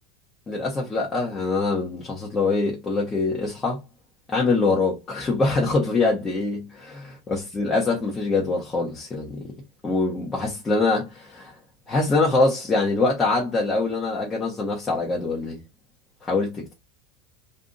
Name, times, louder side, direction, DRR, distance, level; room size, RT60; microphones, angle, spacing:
voice 1, 0.5-3.8 4.3-6.9 7.3-9.4 9.8-11.5 11.9-15.6 16.2-16.7, left 3 dB, 20° left, 1.0 m, -24 dB
2.6 x 2.5 x 3.9 m
supercardioid pair, 125°, 0 cm